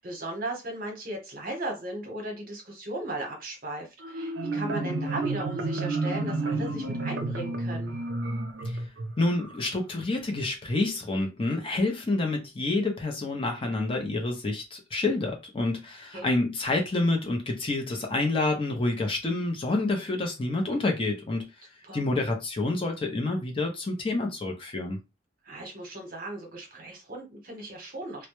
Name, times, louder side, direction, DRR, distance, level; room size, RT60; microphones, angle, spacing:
voice 1, 0.0-7.9 16.1-16.3 21.9-22.0 25.4-28.3, right 1 dB, 45° right, 0.9 m, -36 dB
Marimba xylophone, 4.0-9.6, right 2 dB, 70° right, 0.5 m, -31 dB
voice 2, 9.2-21.5 21.9-25.0, left 2 dB, 30° left, 0.5 m, -28 dB
2.1 x 2.0 x 2.9 m
head